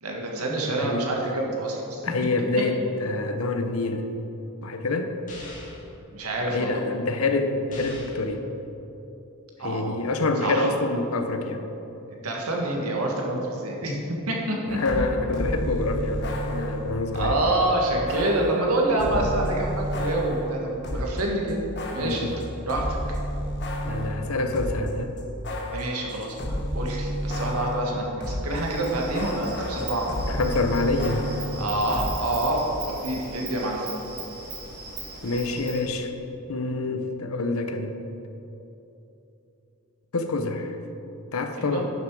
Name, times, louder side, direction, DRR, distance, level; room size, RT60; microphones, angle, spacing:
voice 1, 0.0-2.0 6.1-6.8 9.6-9.9 10.4-10.7 12.2-15.0 17.1-21.6 21.9-22.3 22.7-22.8 25.7-30.1 31.6-32.6 32.9-33.9 41.6-41.8, right 1 dB, 85° right, -1 dB, 1.7 m, -27 dB
voice 2, 0.8-1.1 2.0-4.1 4.6-5.1 6.5-8.4 9.6-11.6 14.7-17.4 19.2-19.3 21.9-22.3 23.8-25.1 30.3-31.3 35.2-36.1 36.5-37.9 40.1-40.8 41.3-41.9, left 2 dB, 70° left, 7 dB, 0.8 m, -26 dB
sound 1, 5.3-5.9 7.7-8.3, left 2 dB, 35° left, 1.6 m, -41 dB
sound 2, 14.7-17.5 18.1-21.2 21.5-28.6 28.9-32.1, equal, 50° left, 1.3 m, -31 dB
Insect, 28.4-35.8, right 3 dB, 45° right, 2.4 m, -39 dB
11.0 x 7.0 x 4.8 m, 3.0 s
head